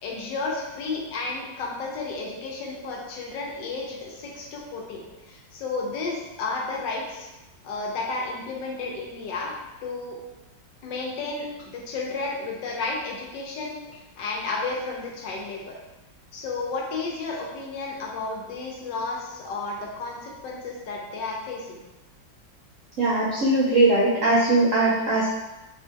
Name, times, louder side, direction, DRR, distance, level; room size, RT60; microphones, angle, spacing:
voice 1, 0.0-7.3 7.6-9.5 9.8-10.2 10.8-13.7 14.2-15.8 16.3-21.8, left 3 dB, 75° left, -1 dB, 1.3 m, -32 dB
voice 2, 23.0-25.3, right 2 dB, 90° right, -5 dB, 0.7 m, -20 dB
3.7 x 2.5 x 2.5 m, 1.0 s
omnidirectional pair, 2.0 m